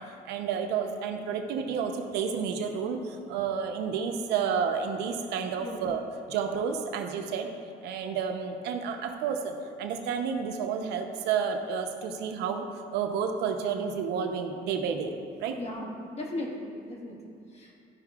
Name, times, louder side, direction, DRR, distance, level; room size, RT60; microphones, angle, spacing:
voice 1, 0.0-6.0 6.3-7.5 7.8-15.1 15.4-15.6, right 6 dB, 85° right, 5 dB, 0.7 m, -31 dB
voice 2, 15.6-17.7, left 1 dB, 40° left, -1 dB, 1.6 m, -37 dB
13.0 x 5.7 x 2.4 m, 2.5 s
cardioid pair, 110°, 17 cm